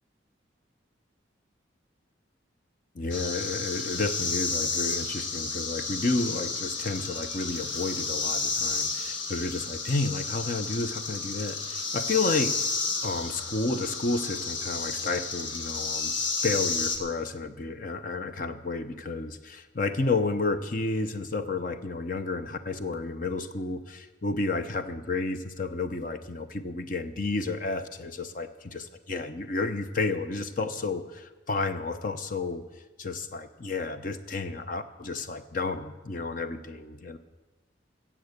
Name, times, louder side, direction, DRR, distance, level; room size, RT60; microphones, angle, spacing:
voice 1, 2.9-12.6 13.0-16.1 16.4-32.6 33.0-37.2, left 3 dB, 45° left, 10 dB, 0.8 m, -31 dB
sound 1, 3.1-17.0, left 4 dB, 80° left, 1.6 m, -31 dB
15.5 x 7.5 x 8.1 m, 1.2 s
head